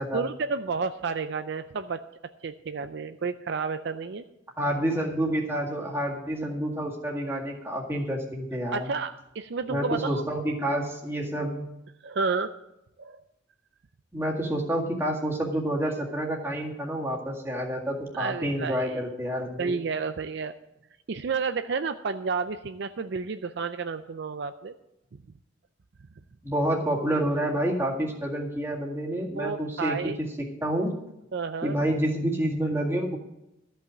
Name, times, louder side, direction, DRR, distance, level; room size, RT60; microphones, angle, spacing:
voice 1, 0.1-2.0 2.4-4.2 8.7-10.2 12.0-12.5 13.0-13.2 18.1-19.0 19.6-20.5 21.1-24.7 29.3-30.2 31.3-31.8, right 5 dB, 60° right, 9 dB, 0.5 m, -31 dB
voice 2, 4.6-8.9 9.7-11.7 14.1-19.8 26.4-30.3 30.6-30.9 31.6-33.2, right 1 dB, 15° right, -2 dB, 2.0 m, -28 dB
13.5 x 5.7 x 7.6 m, 0.89 s
head